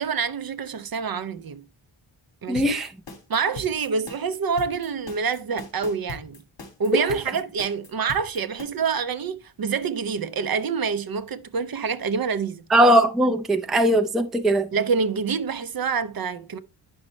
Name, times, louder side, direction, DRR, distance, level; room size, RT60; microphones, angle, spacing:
voice 1, 0.0-1.6 2.4-2.8 3.3-6.4 6.8-12.6 14.7-16.6, right 5 dB, 45° right, 0.5 m, -27 dB
voice 2, 2.5-2.9 6.9-7.0 12.7-14.7, right 1 dB, ahead, 0.4 m, -19 dB
sound 1, 2.6-8.6, left 3 dB, 60° left, 2.4 m, -40 dB
10.0 x 6.2 x 3.1 m
wide cardioid pair, 180°, 49 cm